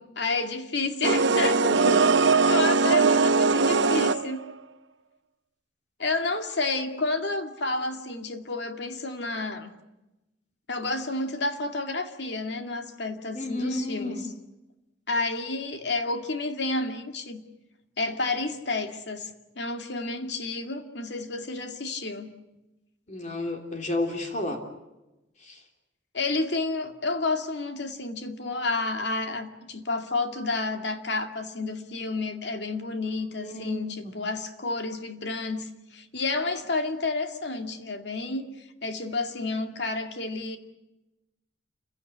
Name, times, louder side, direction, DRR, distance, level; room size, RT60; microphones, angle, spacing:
voice 1, 0.0-1.6 2.5-4.4 6.0-9.7 10.7-14.2 15.1-17.4 18.0-22.3 26.1-40.6, left 3 dB, 65° left, 6 dB, 2.2 m, -30 dB
sound 1, 1.0-4.5, right 4 dB, 75° right, 0.9 m, -21 dB
voice 2, 1.6-2.1 13.3-14.2 23.1-24.6 25.4-25.6 33.4-34.1, left 1 dB, 40° left, 2 dB, 3.1 m, -31 dB
28.5 x 16.5 x 9.9 m, 0.99 s
head